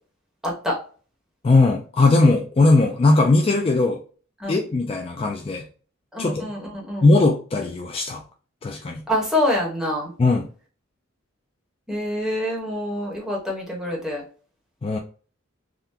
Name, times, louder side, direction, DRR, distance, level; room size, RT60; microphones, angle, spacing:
voice 1, 0.4-0.8 4.4-4.7 6.1-7.1 9.1-10.1 11.9-14.2, left 1 dB, 5° right, -3 dB, 1.1 m, -26 dB
voice 2, 1.4-4.0 4.5-5.7 6.2-6.5 7.0-8.2 8.6-9.0 10.2-10.5 14.8-15.0, left 3 dB, 30° left, 2 dB, 0.3 m, -19 dB
3.6 x 2.2 x 2.7 m, 0.40 s
head